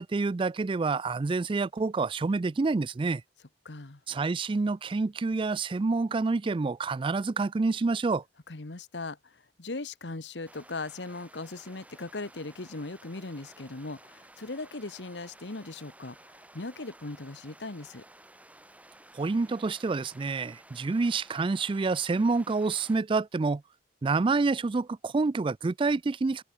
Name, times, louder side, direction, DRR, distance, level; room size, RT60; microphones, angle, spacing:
voice 1, 0.0-3.2 4.1-8.2 19.1-23.6 24.0-26.4, right 3 dB, 30° right, 0.4 m, -28 dB
voice 2, 3.6-4.0 8.5-9.2 9.6-16.2 16.5-18.0, left 3 dB, 75° left, 1.4 m, -38 dB
sound 1, 10.5-23.0, right 1 dB, 10° right, 6.9 m, -54 dB
head